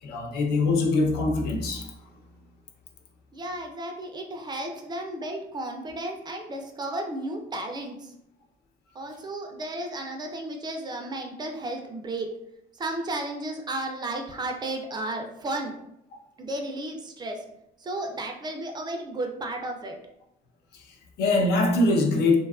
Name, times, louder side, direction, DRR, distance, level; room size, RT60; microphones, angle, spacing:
voice 1, 0.0-1.9 20.7-22.4, left 2 dB, 75° left, 2 dB, 0.5 m, -23 dB
voice 2, 3.3-8.1 9.0-12.3 12.8-15.8 16.4-17.4 17.8-19.9, right 1 dB, 25° right, 3 dB, 0.3 m, -33 dB
2.5 x 2.3 x 2.3 m, 0.78 s
cardioid pair, 110°, 17 cm